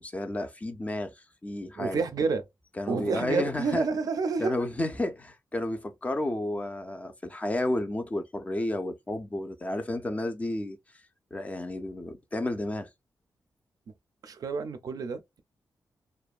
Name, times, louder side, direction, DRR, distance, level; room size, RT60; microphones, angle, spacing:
voice 1, 0.0-2.0 2.8-3.9 4.4-10.8 11.3-12.9, left 1 dB, 20° left, 0.4 m, -32 dB
voice 2, 1.8-2.4 2.9-4.6 14.2-15.4, right 4 dB, 60° right, 0.4 m, -29 dB
2.5 x 2.1 x 2.3 m
wide cardioid pair, 150°, 7 cm